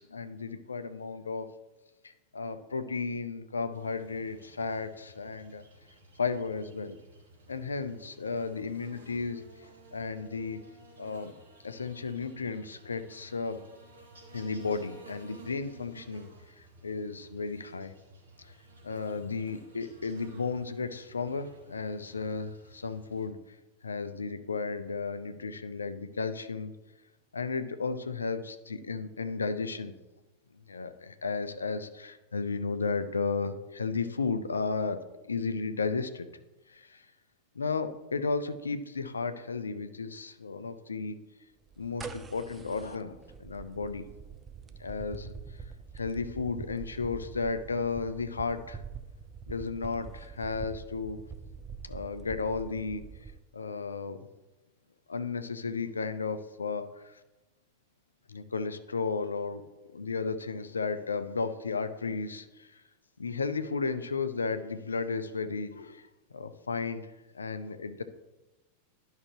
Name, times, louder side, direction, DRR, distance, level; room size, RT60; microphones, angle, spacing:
voice 1, 0.0-1.5 2.0-5.6 6.2-7.0 7.5-9.4 9.9-10.6 11.0-11.3 11.6-13.6 14.3-16.3 16.6-17.9 18.8-23.4 23.8-26.7 27.3-29.9 30.7-35.0 35.2-36.3 36.7-37.0 37.6-41.2 41.8-44.0 44.8-45.3 45.9-48.8 49.5-51.2 51.8-53.0 53.5-54.3 55.1-57.2 58.3-59.6 59.9-62.8 63.2-66.1 66.3-68.0, left 4 dB, 75° left, 11 dB, 0.5 m, -34 dB
Buzz, 3.7-23.3, right 2 dB, 70° right, 1.9 m, -55 dB
sound 1, 41.7-53.4, right 6 dB, 15° right, 0.5 m, -45 dB
11.0 x 5.6 x 3.0 m, 1.1 s
figure-of-eight pair, 90°, 0 cm